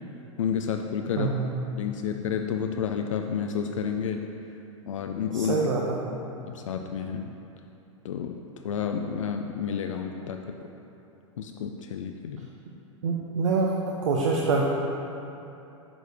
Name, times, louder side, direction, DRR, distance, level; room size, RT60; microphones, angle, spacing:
voice 1, 0.4-1.3 1.8-4.2 4.9-5.6 6.5-7.3 8.0-10.6 11.4-12.5, left 7 dB, 75° left, 4 dB, 0.4 m, -30 dB
voice 2, 1.2-1.5 5.3-6.0 13.0-14.7, right 4 dB, 75° right, -2 dB, 0.7 m, -25 dB
8.8 x 4.8 x 3.4 m, 2.9 s
hypercardioid pair, 95°, 16 cm